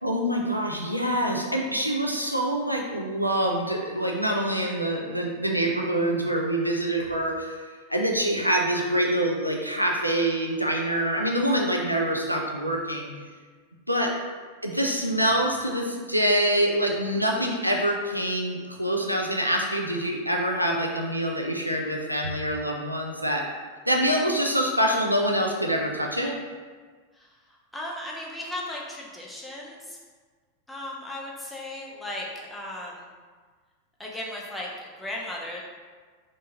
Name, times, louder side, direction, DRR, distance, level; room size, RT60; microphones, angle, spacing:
voice 1, 0.0-7.6 7.9-13.1 13.9-14.1 14.6-23.4 23.9-26.3, right 1 dB, 90° right, 0 dB, 0.4 m, -25 dB
voice 2, 27.7-30.0 30.7-33.0 34.0-35.6, left 1 dB, 5° left, -4 dB, 0.6 m, -36 dB
3.5 x 2.5 x 2.8 m, 1.5 s
figure-of-eight pair, 90°, 0 cm